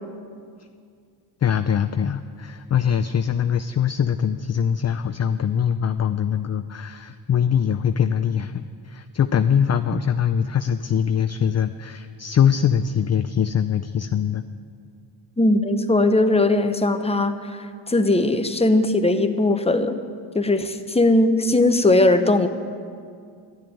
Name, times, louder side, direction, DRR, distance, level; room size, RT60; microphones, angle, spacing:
voice 1, 1.4-14.4, left 8 dB, 35° left, 10 dB, 0.5 m, -22 dB
voice 2, 15.4-20.0 20.3-22.5, left 2 dB, 15° left, 8 dB, 0.9 m, -19 dB
12.0 x 7.6 x 10.0 m, 2.2 s
cardioid pair, 75°, 46 cm